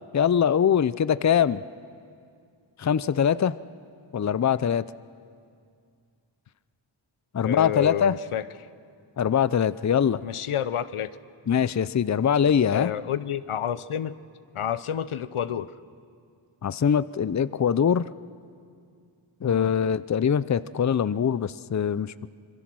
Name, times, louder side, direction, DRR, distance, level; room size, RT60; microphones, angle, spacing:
voice 1, 0.1-1.6 2.8-3.5 4.1-4.8 7.3-8.1 9.2-10.2 11.5-12.9 16.6-18.1 19.4-22.3, left 8 dB, 35° left, 16 dB, 0.5 m, -23 dB
voice 2, 7.4-8.4 10.2-11.1 12.7-14.1 14.5-15.7 19.4-19.7, left 9 dB, 85° left, 14 dB, 0.7 m, -29 dB
26.0 x 22.5 x 6.2 m, 2.3 s
wide cardioid pair, 50°, 49 cm